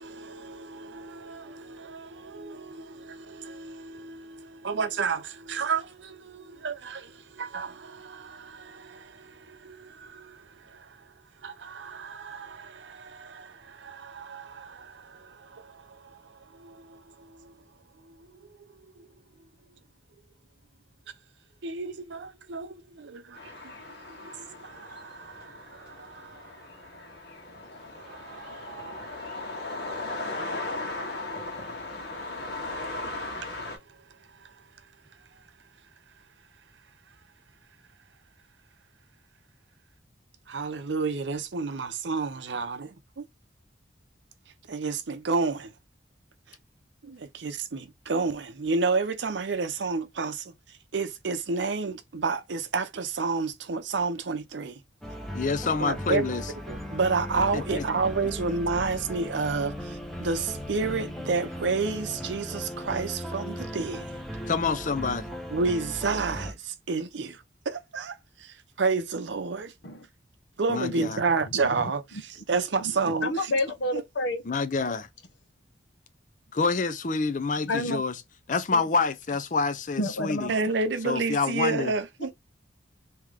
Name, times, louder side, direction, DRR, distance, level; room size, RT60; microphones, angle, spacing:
voice 1, 0.0-17.6 18.0-19.1 21.6-27.2 27.8-31.3 32.3-35.5 36.1-36.2 37.1-37.2 40.5-43.3 44.7-45.7 46.5-46.6 47.0-54.8 55.8-56.3 56.7-64.2 65.5-69.7 70.6-73.5 73.9-74.0 80.5-82.3, right 4 dB, 75° right, 0.6 m, -31 dB
sound 1, 23.4-33.8, left 2 dB, 60° left, 1.6 m, -37 dB
sound 2, 55.0-66.5, equal, ahead, 0.7 m, -37 dB
voice 2, 55.3-56.4 57.5-57.8 64.5-65.3 70.7-71.2 74.4-75.1 76.5-78.2 78.5-80.5 81.0-81.9, left 4 dB, 45° left, 0.5 m, -27 dB
voice 3, 73.2-74.4 77.7-78.0 78.7-78.8 80.0-80.5, left 1 dB, 75° left, 0.9 m, -28 dB
3.6 x 2.9 x 3.2 m
head